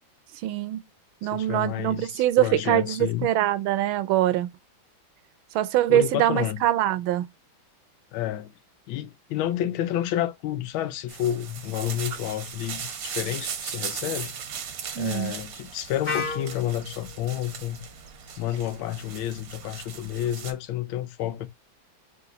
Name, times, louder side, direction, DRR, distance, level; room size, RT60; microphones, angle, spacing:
voice 1, 0.4-0.8 1.2-4.5 5.5-7.3 15.0-15.3, right 13 dB, 85° right, 1.4 m, -23 dB
voice 2, 1.3-3.3 5.9-6.6 8.1-8.5 8.9-14.3 15.0-17.8 18.4-21.5, left 12 dB, 85° left, 1.4 m, -30 dB
sound 1, 11.1-20.5, right 7 dB, 60° right, 1.0 m, -38 dB
Wind instrument woodwind instrument, 16.0-19.9, left 4 dB, 40° left, 1.3 m, -37 dB
3.8 x 2.8 x 3.8 m
omnidirectional pair, 2.2 m